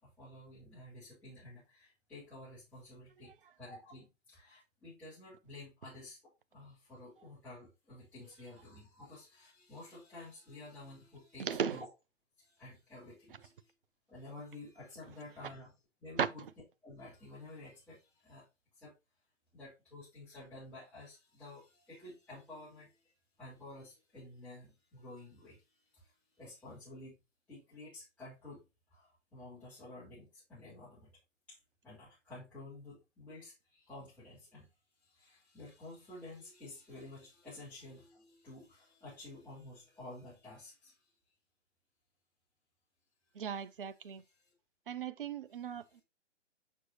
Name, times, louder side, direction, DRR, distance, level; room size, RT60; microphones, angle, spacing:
voice 1, 0.0-6.2 6.5-11.9 12.4-13.7 14.1-15.7 16.0-16.4 16.8-18.5 18.7-18.9 19.5-23.1 23.4-25.6 25.9-27.2 27.5-28.6 28.9-31.1 31.5-31.6 31.8-34.7 35.0-41.1 44.1-44.5, left 2 dB, 5° left, 3.8 m, -51 dB
voice 2, 11.4-11.8 16.2-16.3 43.3-44.2 44.9-46.0, right 8 dB, 45° right, 0.6 m, -36 dB
6.7 x 6.2 x 2.8 m
figure-of-eight pair, 125°, 37 cm